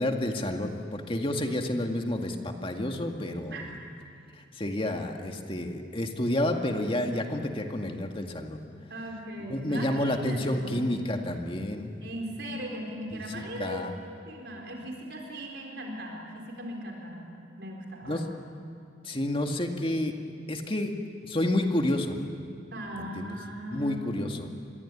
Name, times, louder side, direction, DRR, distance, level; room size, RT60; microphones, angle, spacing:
voice 1, 0.0-3.8 4.5-8.6 9.5-12.0 13.6-13.9 18.1-18.3 19.0-20.1 20.5-20.9 21.3-22.2 23.0-23.4 23.7-24.5, left 1 dB, 30° left, 3 dB, 2.0 m, -30 dB
voice 2, 8.9-10.9 12.0-14.0 14.3-17.3 17.6-18.2 22.7-24.3, equal, 65° right, 1 dB, 4.2 m, -38 dB
27.0 x 22.0 x 9.9 m, 2.5 s
head